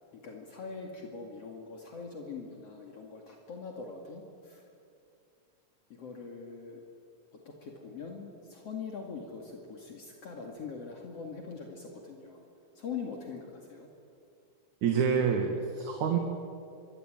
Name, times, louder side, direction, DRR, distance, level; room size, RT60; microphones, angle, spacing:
voice 1, 0.1-4.6 5.9-6.8 7.3-12.5 12.7-13.9, left 5 dB, 55° left, 1 dB, 3.3 m, -42 dB
voice 2, 14.8-16.2, right 6 dB, 85° right, 4 dB, 3.2 m, -27 dB
25.0 x 23.5 x 9.1 m, 2.5 s
omnidirectional pair, 3.3 m